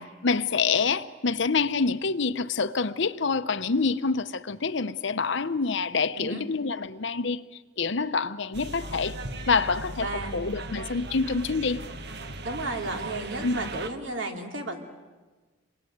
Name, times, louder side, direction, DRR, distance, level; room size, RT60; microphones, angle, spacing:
voice 1, 0.0-7.4 7.8-9.2 9.5-10.1 10.3-11.8 13.4-13.6, left 4 dB, 65° left, 0.8 m, -26 dB
sound 1, 8.5-13.9, right 2 dB, 60° right, 1.5 m, -38 dB
voice 2, 10.0-10.4 12.4-14.8, right 2 dB, 75° right, 3.2 m, -33 dB
27.5 x 22.5 x 9.4 m
head